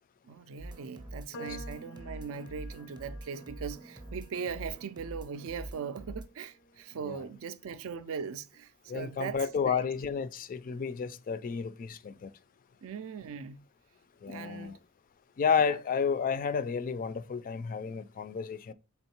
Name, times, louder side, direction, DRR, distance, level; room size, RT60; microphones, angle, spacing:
voice 1, 0.2-9.9 12.8-13.6 14.3-14.8, right 6 dB, 65° right, 0.4 m, -40 dB
sound 1, 0.6-6.2, right 1 dB, 20° right, 0.6 m, -45 dB
sound 2, 1.3-7.7, right 1 dB, 85° left, 0.6 m, -52 dB
voice 2, 8.9-12.3 14.2-14.8 15.4-18.7, left 6 dB, 40° left, 0.3 m, -31 dB
3.9 x 3.5 x 2.8 m
head